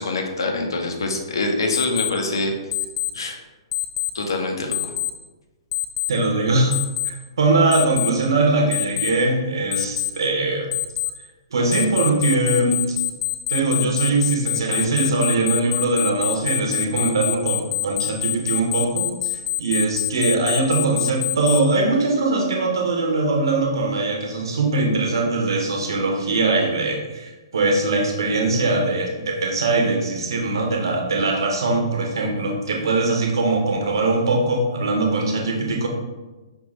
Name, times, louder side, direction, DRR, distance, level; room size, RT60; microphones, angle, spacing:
voice 1, 0.0-2.5 3.1-3.4 4.1-4.9, left 2 dB, 65° left, 3 dB, 0.7 m, -25 dB
Alarm, 1.7-2.1 2.7-3.1 3.7-4.1 4.7-5.1 5.7-6.1 6.7-7.1 7.7-8.1 8.7-9.1 9.7-10.1 10.7-11.1 11.7-21.6, left 16 dB, 30° left, 0.4 m, -24 dB
voice 2, 6.1-6.8 7.0-10.7 11.5-13.0 13.5-35.9, right 2 dB, 65° right, 0 dB, 0.9 m, -21 dB
5.3 x 2.5 x 3.1 m, 1.2 s
figure-of-eight pair, 115°, 2 cm